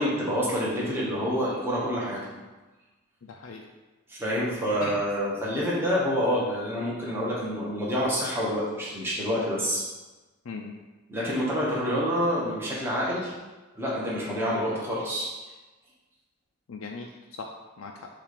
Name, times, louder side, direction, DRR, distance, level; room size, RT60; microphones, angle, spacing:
voice 1, 0.0-2.2 4.1-9.8 11.1-13.3 13.7-15.3, equal, 10° right, -6 dB, 1.1 m, -27 dB
voice 2, 3.2-3.7 4.8-5.0 10.4-10.8 16.7-18.1, left 4 dB, 80° left, 1 dB, 0.5 m, -39 dB
7.2 x 2.5 x 5.2 m, 1.2 s
head